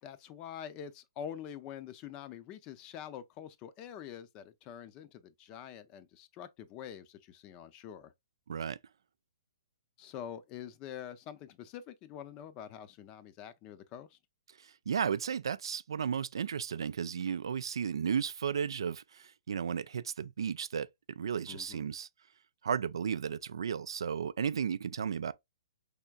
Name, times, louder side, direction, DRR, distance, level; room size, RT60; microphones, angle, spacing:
voice 1, 0.0-8.1 10.0-14.2 21.5-21.9, left 9 dB, 30° left, 0.5 m, -46 dB
voice 2, 8.5-8.8 14.6-22.1 22.6-25.3, right 7 dB, 70° right, 0.3 m, -34 dB
4.3 x 3.5 x 2.3 m
hypercardioid pair, 130°, 3 cm